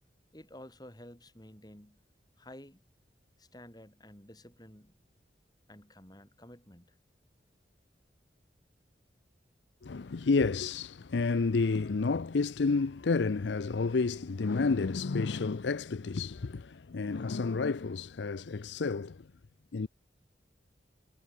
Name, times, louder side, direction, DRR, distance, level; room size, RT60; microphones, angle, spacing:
voice 1, 0.3-2.0 2.4-2.8 3.4-5.0 5.7-7.0, left 1 dB, 20° left, 4.2 m, -52 dB
voice 2, 9.8-19.2 19.7-19.9, left 4 dB, 75° left, 0.6 m, -30 dB
head